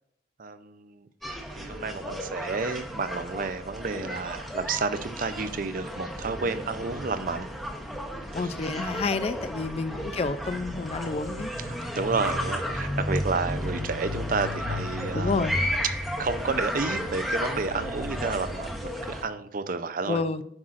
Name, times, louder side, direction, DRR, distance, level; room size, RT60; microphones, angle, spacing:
voice 1, 0.4-1.1 1.5-7.5 8.3-8.5 9.9-10.1 11.6-15.4 16.2-20.2, right 4 dB, 50° right, 11 dB, 0.5 m, -31 dB
sound 1, 1.2-19.2, equal, ahead, 0.8 m, -33 dB
voice 2, 8.3-11.5 15.1-15.6 20.1-20.4, left 4 dB, 35° left, 13 dB, 0.3 m, -29 dB
9.6 x 6.0 x 2.5 m, 0.72 s
head